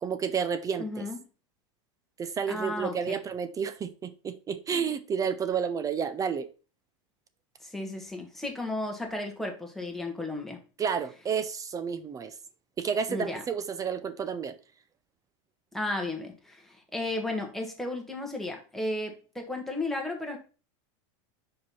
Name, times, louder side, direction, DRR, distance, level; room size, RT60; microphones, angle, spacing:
voice 1, 0.0-1.1 2.2-6.5 10.8-12.3 12.8-14.5, right 7 dB, 20° right, 12 dB, 0.5 m, -31 dB
voice 2, 0.8-1.2 2.5-3.2 7.6-10.6 13.1-13.4 15.7-20.4, left 2 dB, ahead, 1 dB, 1.6 m, -34 dB
5.1 x 4.7 x 5.5 m, 0.35 s
supercardioid pair, 130°, 16 cm